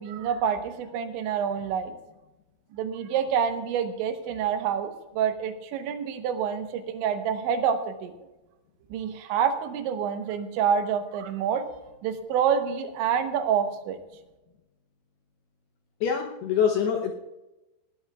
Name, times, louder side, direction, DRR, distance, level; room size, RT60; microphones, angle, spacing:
voice 1, 0.0-1.9 2.7-8.1 8.9-11.6 12.0-14.0, right 7 dB, 75° right, 7 dB, 3.2 m, -27 dB
voice 2, 16.0-17.2, left 7 dB, 75° left, 2 dB, 2.4 m, -25 dB
18.5 x 18.0 x 2.4 m, 1.0 s
omnidirectional pair, 5.5 m